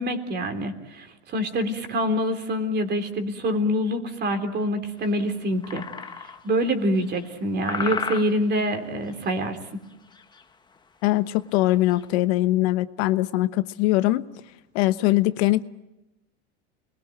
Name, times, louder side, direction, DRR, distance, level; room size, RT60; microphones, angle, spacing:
voice 1, 0.0-5.9 6.4-9.6, equal, 30° right, 6 dB, 3.5 m, -26 dB
sound 1, 5.0-5.1 5.6-6.5 7.0-7.4 7.7-8.7 9.0-9.4 9.9-10.4 10.7-10.8 11.2-11.3 11.7-12.0, left 5 dB, 10° left, 1.0 m, -34 dB
voice 2, 11.0-14.3 14.7-15.6, left 17 dB, 60° left, 11 dB, 1.2 m, -22 dB
29.5 x 22.0 x 9.1 m, 0.93 s
supercardioid pair, 145°, 35 cm